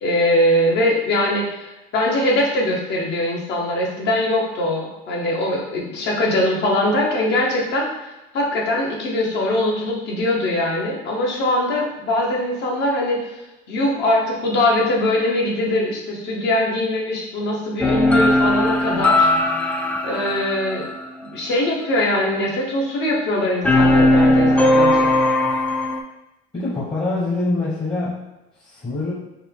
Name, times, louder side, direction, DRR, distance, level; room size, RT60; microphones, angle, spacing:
voice 1, 0.0-13.3 13.7-19.3 20.0-20.9 21.2-25.1, left 1 dB, 55° left, -1 dB, 1.1 m, -22 dB
sound 1, 17.8-21.5 23.6-26.0, left 1 dB, 5° left, 0.3 m, -18 dB
voice 2, 26.5-28.2 28.6-29.1, left 2 dB, 20° left, -7 dB, 1.0 m, -24 dB
4.2 x 2.3 x 3.5 m, 0.97 s
supercardioid pair, 110°, 21 cm